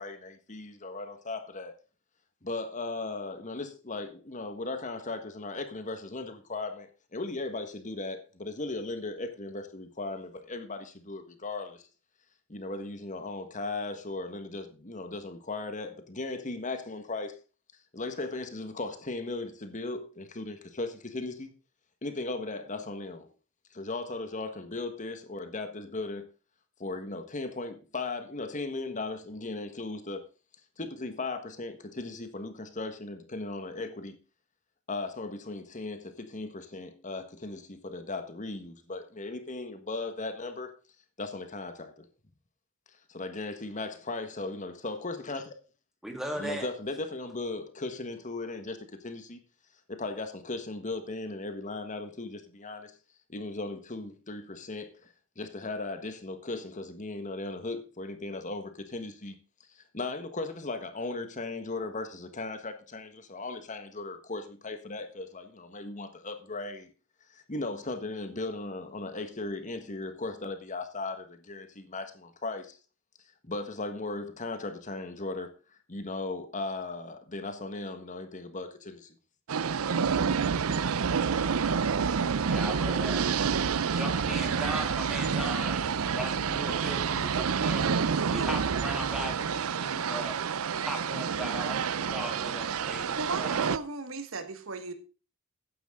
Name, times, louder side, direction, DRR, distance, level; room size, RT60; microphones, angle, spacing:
voice 1, 0.0-1.7 2.4-11.9 12.5-17.4 17.9-21.5 22.0-23.3 23.7-26.3 26.8-30.3 30.8-34.2 34.9-40.7 41.2-42.1 43.1-45.6 46.4-49.4 49.9-52.9 53.3-59.3 59.7-66.9 67.3-72.8 73.4-79.2, left 2 dB, 35° left, 1.5 m, -37 dB
voice 2, 46.0-46.7 82.4-83.2 83.9-85.9 86.1-88.0 88.3-90.4 90.8-93.7, equal, ahead, 3.2 m, -38 dB
sound 1, 79.5-93.8, right 6 dB, 90° right, 0.6 m, -28 dB
voice 3, 93.1-94.9, right 3 dB, 70° right, 1.5 m, -36 dB
14.5 x 9.9 x 3.7 m
head